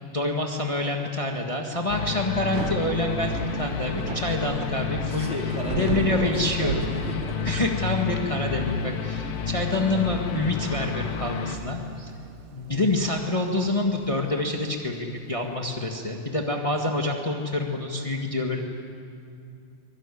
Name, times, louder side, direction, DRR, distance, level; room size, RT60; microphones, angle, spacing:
voice 1, 0.0-5.3 5.7-6.8 7.4-12.1 12.5-18.6, left 2 dB, 55° left, 1 dB, 0.3 m, -27 dB
sound 1, 1.9-11.6, left 6 dB, 80° left, 3.0 m, -30 dB
Thunder / Rain, 2.3-15.5, right 8 dB, 85° right, 2.6 m, -37 dB
voice 2, 5.0-7.4, equal, 20° right, -2 dB, 4.2 m, -34 dB
23.5 x 20.0 x 9.9 m, 2.5 s
omnidirectional pair, 3.7 m